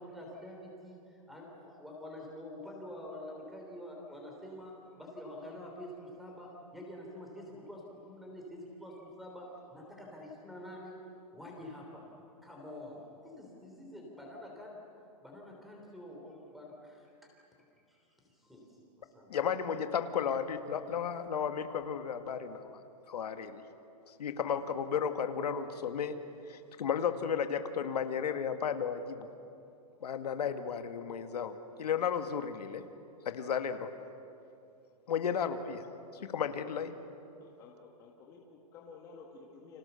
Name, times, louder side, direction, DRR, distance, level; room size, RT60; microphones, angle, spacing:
voice 1, 0.0-9.5 9.7-11.0 11.3-12.0 12.4-14.8 15.2-17.1 17.9-18.6 19.0-19.3, left 1 dB, ahead, -1 dB, 3.6 m, -47 dB
voice 2, 19.3-22.8 23.1-23.6 24.2-26.2 26.5-29.3 30.0-32.8 33.3-33.9 35.1-35.9 36.1-36.9, left 7 dB, 90° left, 7 dB, 2.0 m, -34 dB
voice 3, 37.4-39.8, left 4 dB, 15° left, -1 dB, 1.8 m, -53 dB
30.0 x 26.0 x 7.0 m, 2.7 s
hypercardioid pair, 175°, 20 cm